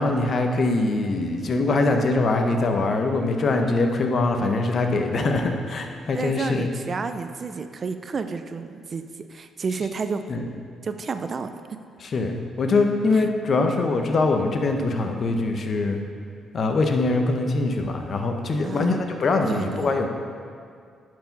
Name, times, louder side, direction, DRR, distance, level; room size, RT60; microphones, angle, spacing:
voice 1, 0.0-6.7 10.3-10.4 12.0-16.0 16.5-20.1, left 3 dB, 50° left, 4 dB, 0.9 m, -23 dB
voice 2, 6.1-10.2 10.8-11.5 13.1-13.2 18.6-19.0 19.4-19.9, right 5 dB, 40° right, 9 dB, 0.4 m, -31 dB
10.0 x 4.8 x 5.4 m, 2.2 s
cardioid pair, 90°, 0 cm